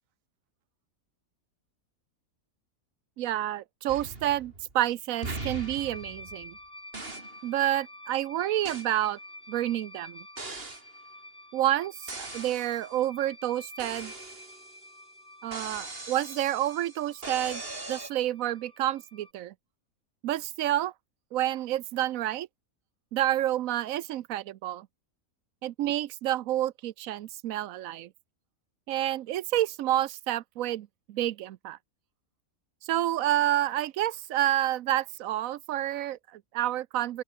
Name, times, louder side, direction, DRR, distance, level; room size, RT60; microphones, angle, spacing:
voice 1, 3.2-6.6 7.4-9.2 9.5-10.3 11.5-14.1 15.4-17.6 17.9-19.5 20.2-20.9 21.3-22.5 23.1-24.9 25.6-28.1 28.9-31.8 32.8-37.2, right 13 dB, 75° right, 1.0 m, -29 dB
sound 1, 3.9-4.8 5.2-6.6 6.9-7.4 8.6-8.9 10.4-10.9 12.1-12.8 13.8-14.9 15.5-18.1, right 3 dB, 40° right, 3.3 m, -40 dB
sound 2, 5.1-19.3, left 1 dB, 25° left, 5.8 m, -49 dB
open air
omnidirectional pair, 1.5 m